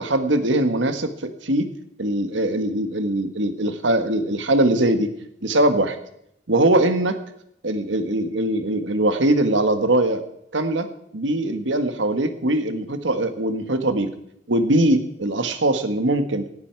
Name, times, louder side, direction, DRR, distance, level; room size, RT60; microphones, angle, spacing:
voice 1, 0.0-1.7 2.0-5.1 5.4-6.0 6.5-7.2 7.6-10.2 10.5-10.9 11.1-14.1 14.5-16.4, right 1 dB, 90° right, 9 dB, 1.6 m, -21 dB
17.0 x 11.5 x 4.7 m, 0.75 s
head